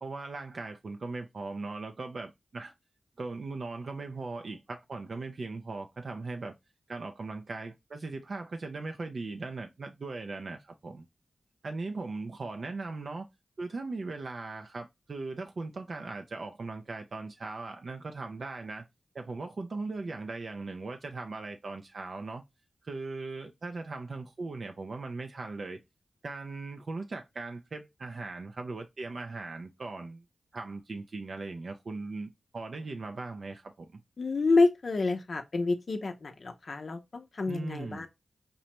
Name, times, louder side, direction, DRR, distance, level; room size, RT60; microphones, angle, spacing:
voice 1, 0.0-2.7 3.2-6.5 6.9-11.0 11.6-13.3 13.6-18.9 19.1-22.4 22.8-25.8 26.2-30.2 30.5-34.0 37.5-38.1, right 3 dB, 65° right, 0.4 m, -39 dB
voice 2, 34.2-38.1, left 3 dB, 60° left, 0.5 m, -28 dB
5.2 x 2.1 x 2.8 m
cardioid pair, 65°, 0 cm